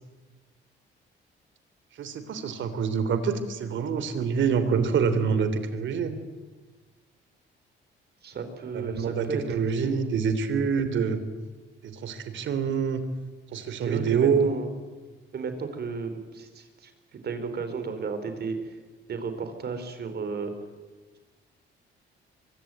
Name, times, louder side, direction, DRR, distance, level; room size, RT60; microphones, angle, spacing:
voice 1, 2.0-6.2 8.7-11.2 11.8-13.0 13.5-14.6, right 6 dB, 70° right, 11 dB, 3.4 m, -26 dB
voice 2, 8.2-9.4 9.8-10.1 13.5-14.7 15.3-18.8 19.1-20.5, right 5 dB, 55° right, 8 dB, 4.6 m, -34 dB
24.0 x 23.5 x 9.3 m, 1.3 s
cardioid pair, 90°, 20 cm